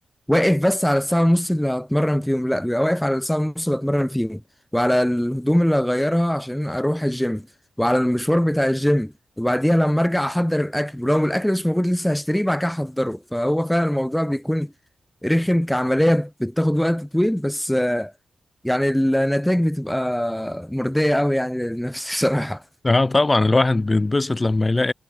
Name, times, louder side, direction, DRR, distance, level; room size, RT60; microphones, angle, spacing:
voice 1, 0.3-4.4 4.7-7.5 7.8-14.7 15.2-18.1 18.6-22.6, equal, 5° left, 4.9 m, -21 dB
voice 2, 22.8-24.9, left 2 dB, 20° left, 5.3 m, -19 dB
wide cardioid pair, 170°, 0 cm